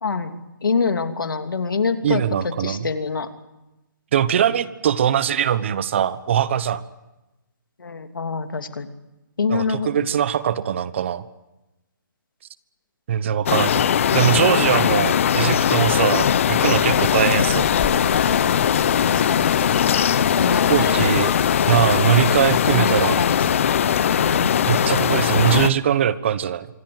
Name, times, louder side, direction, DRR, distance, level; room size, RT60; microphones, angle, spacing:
voice 1, 0.0-3.3 7.8-8.9 9.4-10.1 19.0-19.5 20.4-21.2 22.7-23.7 24.2-24.5, left 4 dB, 85° left, 7 dB, 2.9 m, -25 dB
voice 2, 2.0-2.9 4.1-6.8 9.5-11.2 13.1-17.7 20.7-21.4 21.7-23.2 24.7-26.7, right 9 dB, 35° right, 16 dB, 1.2 m, -21 dB
sound 1, 13.5-25.7, left 9 dB, 40° left, 0.9 m, -19 dB
sound 2, 16.9-22.8, left 6 dB, 5° left, 1.3 m, -35 dB
26.0 x 24.0 x 7.9 m, 0.99 s
hypercardioid pair, 165°, 11 cm